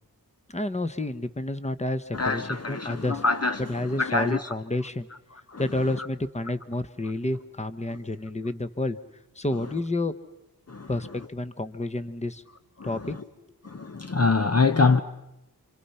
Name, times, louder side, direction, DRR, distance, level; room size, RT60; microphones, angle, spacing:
voice 1, 0.5-3.2 3.7-5.1 5.6-9.0 9.4-10.1 10.9-12.4 12.8-13.1, left 2 dB, 20° left, 1.2 m, -30 dB
voice 2, 2.1-4.5 5.5-5.6 5.9-6.1 7.9-8.0 10.7-11.0 12.8-13.2 13.6-15.0, left 4 dB, 40° left, 0.9 m, -25 dB
29.0 x 26.5 x 5.7 m
wide cardioid pair, 85°, 37 cm